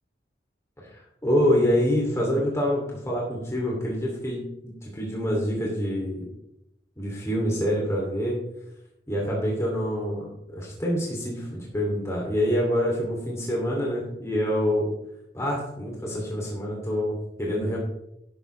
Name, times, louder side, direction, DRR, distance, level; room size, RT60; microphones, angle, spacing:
voice 1, 0.8-6.2 7.0-8.4 9.1-14.9 15.3-17.8, equal, 15° left, -3 dB, 3.0 m, -26 dB
12.0 x 11.5 x 3.4 m, 0.81 s
head